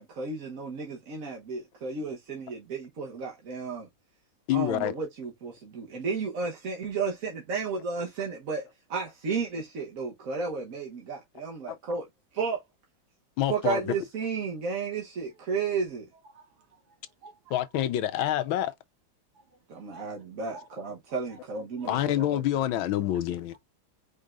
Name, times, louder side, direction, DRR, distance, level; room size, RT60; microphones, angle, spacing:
voice 1, 0.0-3.9 4.5-12.1 12.3-12.6 13.5-16.0 19.7-22.4, right 5 dB, 50° right, 1.2 m, -33 dB
voice 2, 4.5-4.9 11.7-11.8 13.4-13.9 17.5-18.7 21.9-23.5, left 12 dB, 85° left, 1.4 m, -27 dB
voice 3, 16.3-16.8 17.2-17.6 19.5-19.6 19.9-20.1 20.5-20.7 21.8-22.1, right 3 dB, 70° right, 2.6 m, -50 dB
5.3 x 3.6 x 2.4 m
omnidirectional pair, 2.2 m